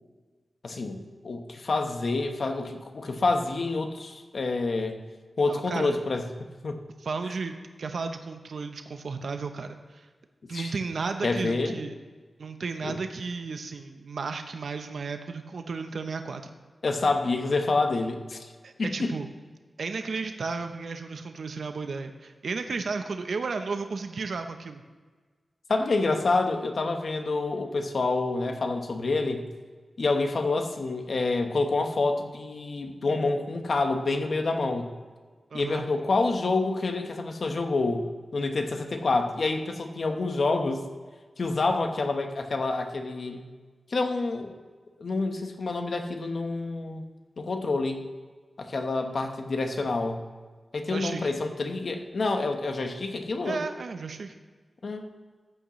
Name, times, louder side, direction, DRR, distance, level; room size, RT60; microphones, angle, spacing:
voice 1, 0.6-5.0 5.4-6.3 6.6-6.8 10.5-10.7 11.2-11.7 12.8-13.0 16.8-18.5 18.8-19.1 25.7-29.5 30.0-34.9 35.5-38.1 38.3-40.8 41.4-43.4 43.9-44.5 45.0-47.0 47.4-48.0 48.6-50.2 50.7-53.6 54.8-55.1, left 3 dB, 60° left, 5 dB, 1.1 m, -27 dB
voice 2, 5.5-6.0 7.0-10.1 10.5-11.9 12.4-16.4 18.6-19.3 19.8-24.8 35.5-35.8 50.9-51.3 53.4-54.3, right 4 dB, 75° right, 7 dB, 0.7 m, -33 dB
14.0 x 8.7 x 3.1 m, 1.4 s
wide cardioid pair, 115°, 0 cm